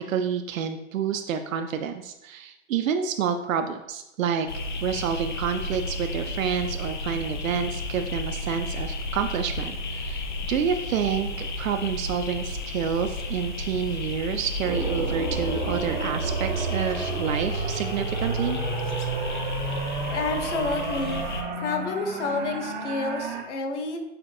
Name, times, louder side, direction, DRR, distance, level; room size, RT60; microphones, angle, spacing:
voice 1, 0.0-4.5 4.8-18.6, right 7 dB, 85° right, 6 dB, 0.5 m, -28 dB
sound 1, 4.5-21.4, left 2 dB, 40° left, 0.4 m, -33 dB
sound 2, 14.6-23.4, right 3 dB, 40° right, 0.6 m, -31 dB
voice 2, 20.1-21.2 21.6-24.0, left 3 dB, 65° left, 5 dB, 0.9 m, -29 dB
5.7 x 3.3 x 2.6 m, 0.92 s
hypercardioid pair, 170°, 39 cm